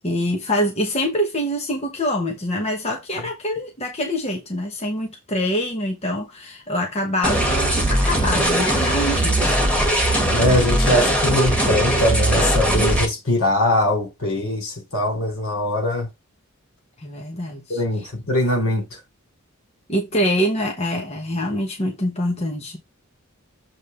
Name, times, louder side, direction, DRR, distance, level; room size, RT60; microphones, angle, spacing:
voice 1, 0.0-9.6 17.0-18.1 19.9-22.8, equal, 30° left, 1.0 m, -25 dB
sound 1, 7.2-13.0, right 1 dB, 5° left, 1.8 m, -19 dB
voice 2, 10.3-16.1 17.7-18.8, left 1 dB, 70° left, 3.7 m, -21 dB
7.3 x 3.5 x 5.4 m
head